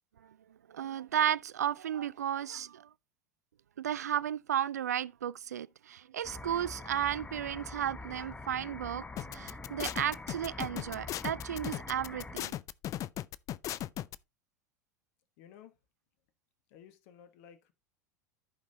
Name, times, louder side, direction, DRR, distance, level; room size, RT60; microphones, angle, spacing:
voice 1, 0.7-2.9 3.8-9.0 9.3-12.5, right 10 dB, 80° right, 0.4 m, -34 dB
sound 1, 6.2-12.4, left 2 dB, 15° left, 1.1 m, -45 dB
sound 2, 9.2-14.2, left 13 dB, 40° left, 0.4 m, -37 dB
voice 2, 15.4-15.8 16.7-17.7, left 9 dB, 60° left, 1.2 m, -55 dB
14.5 x 5.3 x 2.8 m
hypercardioid pair, 80°, 9 cm